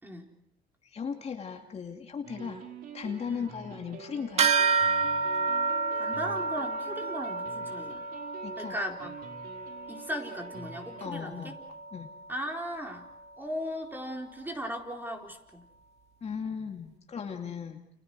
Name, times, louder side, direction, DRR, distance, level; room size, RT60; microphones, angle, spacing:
voice 1, 0.0-0.3 3.3-3.5 5.9-8.0 8.6-9.1 9.9-11.6 12.3-13.1 13.4-15.6 17.4-17.6, equal, 10° right, 2 dB, 4.4 m, -37 dB
voice 2, 0.8-2.7 2.9-4.5 8.4-8.8 11.0-11.6 11.9-12.1 16.2-17.8, left 6 dB, 40° left, 3 dB, 2.6 m, -37 dB
sound 1, 2.2-11.1, right 6 dB, 60° right, 4.0 m, -47 dB
sound 2, 4.4-14.2, right 4 dB, 40° right, 1.9 m, -31 dB
30.0 x 29.5 x 4.9 m, 0.72 s
cardioid pair, 110°, 17 cm